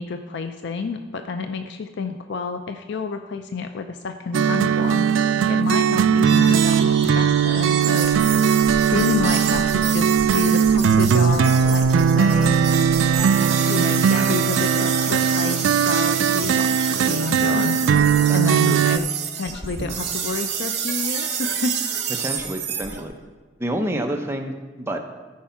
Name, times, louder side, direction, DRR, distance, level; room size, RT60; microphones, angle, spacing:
voice 1, 0.0-8.1 8.5-12.6 13.7-17.8 18.3-19.1 19.3-21.9, left 4 dB, 60° left, 8 dB, 0.4 m, -29 dB
sound 1, 4.3-19.0, right 7 dB, 80° right, 0.3 m, -19 dB
sound 2, 6.2-23.1, right 7 dB, 60° right, 1.4 m, -29 dB
voice 2, 18.3-18.9 22.2-23.1 23.6-25.0, right 1 dB, 15° right, 3 dB, 0.8 m, -29 dB
14.0 x 4.7 x 5.7 m, 1.3 s
head